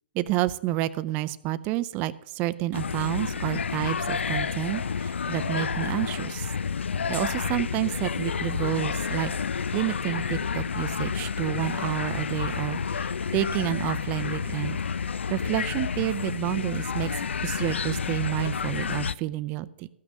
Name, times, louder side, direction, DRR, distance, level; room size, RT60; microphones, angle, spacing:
voice 1, 0.1-6.5 7.1-9.3 9.7-14.8 15.3-19.9, right 15 dB, 25° right, 16 dB, 0.4 m, -29 dB
sound 1, 2.7-19.1, left 6 dB, 90° left, 0.4 m, -30 dB
14.0 x 6.1 x 6.4 m, 0.88 s
hypercardioid pair, 145°, 6 cm